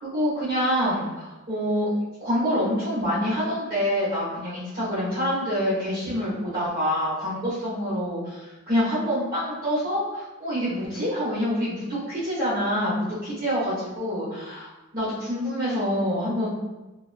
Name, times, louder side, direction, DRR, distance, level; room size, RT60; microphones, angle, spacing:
voice 1, 0.0-1.9 2.2-16.5, equal, 50° right, -12 dB, 0.9 m, -26 dB
2.3 x 2.3 x 2.4 m, 1.1 s
head